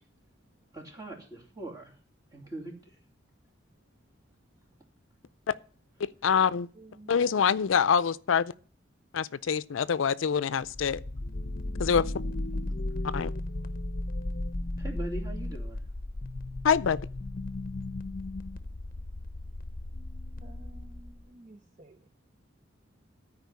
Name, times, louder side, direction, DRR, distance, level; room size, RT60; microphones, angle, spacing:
voice 1, 0.7-1.9 2.3-2.9 14.8-15.8, right 2 dB, 20° right, 2.9 m, -41 dB
voice 2, 6.0-6.7 7.1-8.5 9.1-11.0 11.8-12.1 13.0-13.3 16.6-17.0, left 7 dB, 85° left, 0.5 m, -25 dB
voice 3, 6.8-7.4 20.4-22.0, right 1 dB, 40° right, 0.6 m, -52 dB
sound 1, 10.6-21.3, left 1 dB, 45° left, 0.7 m, -35 dB
13.0 x 4.9 x 8.4 m
head